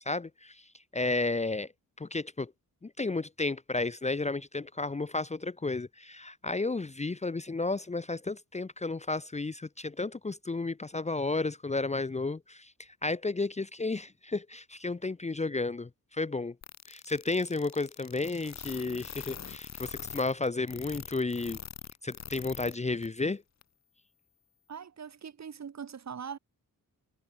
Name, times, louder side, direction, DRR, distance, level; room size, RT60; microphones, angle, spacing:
voice 1, 0.1-0.6 0.9-1.7 2.0-2.5 2.8-16.5 16.9-21.6 22.0-23.4, left 3 dB, 20° left, 0.9 m, -32 dB
sound 1, 16.6-22.7 23.0-23.1 23.6-23.7, left 8 dB, 50° left, 1.0 m, -43 dB
voice 2, 24.7-26.4, right 7 dB, 50° right, 2.2 m, -41 dB
wide cardioid pair, 155°, 35 cm